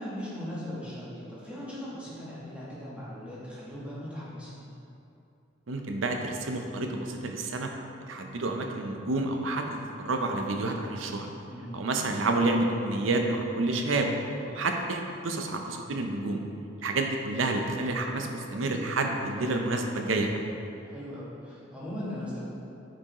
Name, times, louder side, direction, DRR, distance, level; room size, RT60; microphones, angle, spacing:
voice 1, 0.0-4.6 11.5-11.8 20.8-22.4, equal, 5° right, -9 dB, 1.3 m, -39 dB
voice 2, 5.7-7.7 8.1-11.3 11.7-14.1 14.5-16.4 16.8-20.4, right 2 dB, 85° right, 3 dB, 0.6 m, -29 dB
8.6 x 4.7 x 3.0 m, 2.7 s
head